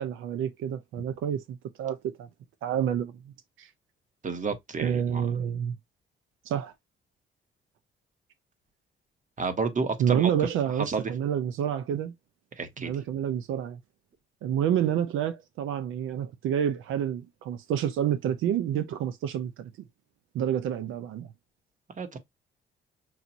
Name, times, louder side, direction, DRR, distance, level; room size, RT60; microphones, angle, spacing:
voice 1, 0.0-2.3 2.6-3.7 4.8-5.8 6.5-6.7 10.0-12.1 12.8-13.8 14.4-19.7 20.3-21.3, right 9 dB, 85° right, 0.7 m, -28 dB
voice 2, 4.2-5.3 9.4-10.3 10.8-11.1 12.6-12.9 22.0-22.2, right 4 dB, 40° right, 1.3 m, -30 dB
5.8 x 2.5 x 2.8 m
cardioid pair, 90°, 20 cm